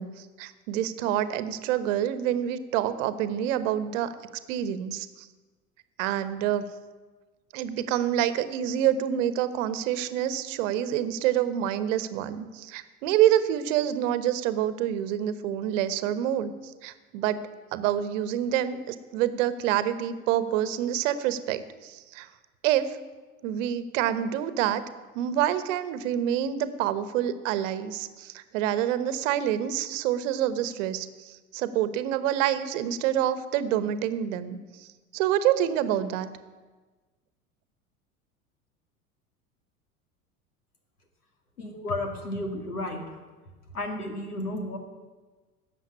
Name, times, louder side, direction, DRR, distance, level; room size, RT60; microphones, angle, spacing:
voice 1, 0.0-4.1 4.5-5.3 6.0-6.6 7.5-17.4 17.7-22.3 22.6-23.0 23.4-24.8 25.1-36.3, right 11 dB, 55° right, 14 dB, 1.1 m, -27 dB
voice 2, 41.6-43.0 43.7-44.8, left 1 dB, 85° left, 5 dB, 2.4 m, -32 dB
13.5 x 7.9 x 9.6 m, 1.3 s
figure-of-eight pair, 80°, 44 cm